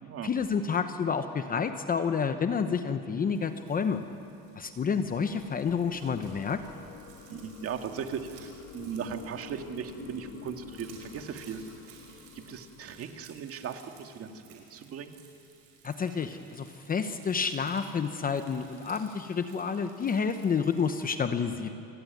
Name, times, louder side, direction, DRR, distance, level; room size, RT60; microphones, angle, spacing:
voice 1, 0.2-4.0 4.6-6.6 15.8-21.7, left 6 dB, 25° left, 8 dB, 0.9 m, -29 dB
Frying (food), 3.3-21.1, right 7 dB, 90° right, 6.4 m, -57 dB
sound 1, 4.1-14.1, left 8 dB, 80° left, 2.3 m, -50 dB
voice 2, 7.3-11.9 12.3-15.2, right 7 dB, 40° right, 6 dB, 2.0 m, -38 dB
28.5 x 20.5 x 9.5 m, 2.7 s
cardioid pair, 155°, 37 cm